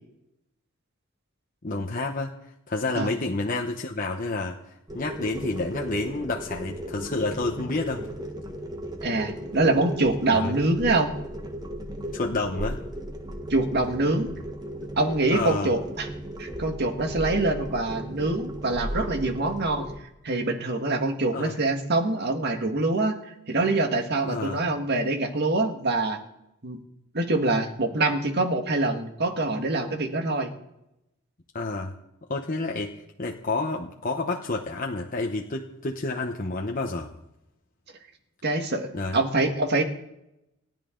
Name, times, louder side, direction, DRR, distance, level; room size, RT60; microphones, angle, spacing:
voice 1, 1.6-2.3 2.7-4.6 4.9-8.1 10.3-10.6 12.1-12.8 15.3-15.7 21.3-21.5 24.2-24.6 31.5-31.9 32.3-32.9 33.2-37.1 38.9-39.2, left 3 dB, 40° left, 1 dB, 1.0 m, -29 dB
sound 1, 4.9-20.0, right 1 dB, 20° right, 1.3 m, -36 dB
voice 2, 9.0-11.1 13.5-14.3 15.0-16.1 16.4-19.9 20.2-26.2 26.6-26.8 27.1-30.5 38.4-39.8, right 2 dB, 55° right, 5 dB, 1.8 m, -25 dB
29.0 x 10.5 x 3.9 m, 0.88 s
head